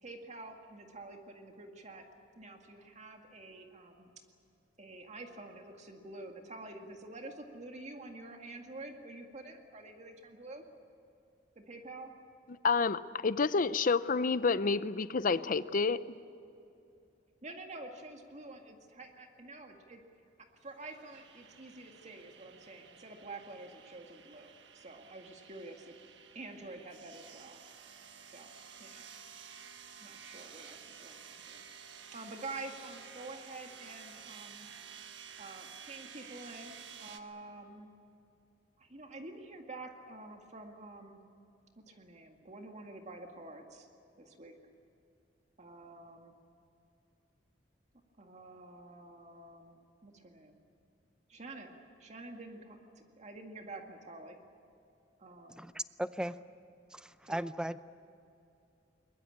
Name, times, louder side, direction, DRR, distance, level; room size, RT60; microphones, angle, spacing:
voice 1, 0.0-2.1 2.4-4.1 4.8-10.6 11.6-12.1 17.4-20.0 20.6-25.9 26.3-27.6 28.2-29.1 30.0-31.6 32.1-34.7 35.4-37.9 38.8-41.2 41.8-43.9 44.2-44.7 45.6-46.3 48.2-50.6 51.3-54.4 55.2-55.6 57.2-57.4, right 2 dB, 40° right, 2.1 m, -48 dB
voice 2, 12.6-16.0, left 4 dB, 50° left, 0.6 m, -29 dB
sound 1, 20.6-37.2, right 7 dB, 80° right, 1.5 m, -52 dB
voice 3, 55.5-56.4 56.9-57.8, right 1 dB, 5° right, 0.6 m, -37 dB
21.5 x 21.5 x 8.6 m
head